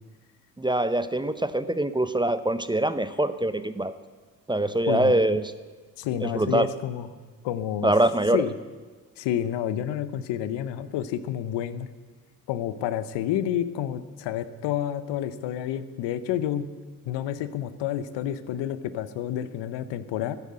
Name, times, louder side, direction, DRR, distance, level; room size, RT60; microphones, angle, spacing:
voice 1, 0.6-3.9 4.5-5.4 6.2-6.7 7.8-8.5, right 1 dB, 10° right, 12 dB, 0.8 m, -24 dB
voice 2, 6.0-7.1 7.4-7.9 8.3-8.5 9.2-11.9 12.5-16.7 17.1-20.4, left 10 dB, 75° left, 14 dB, 0.9 m, -29 dB
13.0 x 9.8 x 7.7 m, 1.4 s
hypercardioid pair, 50°, 43 cm